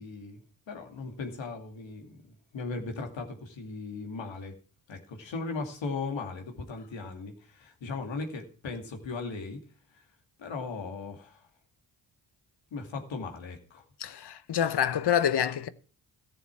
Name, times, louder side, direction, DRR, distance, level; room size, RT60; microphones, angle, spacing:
voice 1, 0.0-2.2 2.5-4.6 4.9-9.6 9.9-10.0 10.4-11.5 12.7-13.8, left 4 dB, 75° left, 2.5 m, -37 dB
voice 2, 14.0-15.7, left 9 dB, 60° left, 1.0 m, -27 dB
14.0 x 7.0 x 6.0 m
cardioid pair, 55°, 45 cm